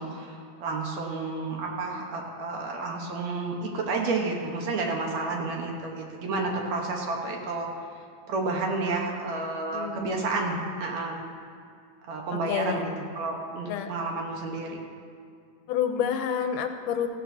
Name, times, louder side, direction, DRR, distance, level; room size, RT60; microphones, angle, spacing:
voice 1, 0.0-7.7 8.3-11.2 12.0-14.8, right 3 dB, 65° right, 0 dB, 2.3 m, -31 dB
voice 2, 9.7-10.1 12.5-12.8 13.7-13.9 15.7-17.1, left 8 dB, 85° left, 6 dB, 2.2 m, -28 dB
17.0 x 15.0 x 2.8 m, 2.3 s
omnidirectional pair, 3.7 m